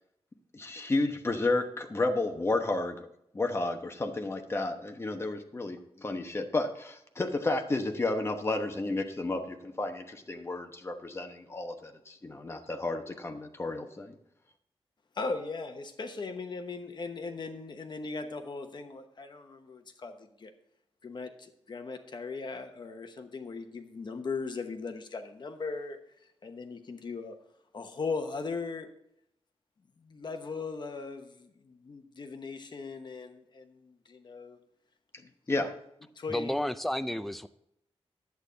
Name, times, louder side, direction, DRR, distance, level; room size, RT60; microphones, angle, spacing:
voice 1, 0.5-3.0 3.3-14.1 35.5-35.7, left 2 dB, 25° left, 4 dB, 1.0 m, -32 dB
voice 2, 15.1-20.5 21.0-26.0 26.4-27.4 27.7-28.9 30.0-34.6 35.2-35.7 36.2-36.7, left 4 dB, 45° left, 6 dB, 1.0 m, -38 dB
voice 3, 36.3-37.5, left 1 dB, ahead, 11 dB, 0.4 m, -31 dB
11.0 x 8.5 x 3.9 m, 0.78 s
wide cardioid pair, 150°, 10 cm